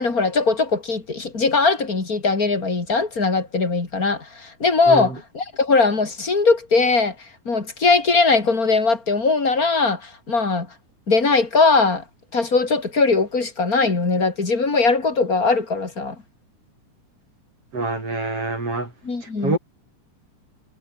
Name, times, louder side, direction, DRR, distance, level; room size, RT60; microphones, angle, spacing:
voice 1, 0.0-7.2 7.5-10.7 11.1-12.0 12.3-16.2 19.0-19.6, left 4 dB, 25° left, 3.5 m, -20 dB
voice 2, 17.7-18.9 19.4-19.6, right 2 dB, 40° right, 8.2 m, -25 dB
omnidirectional pair, 3.9 m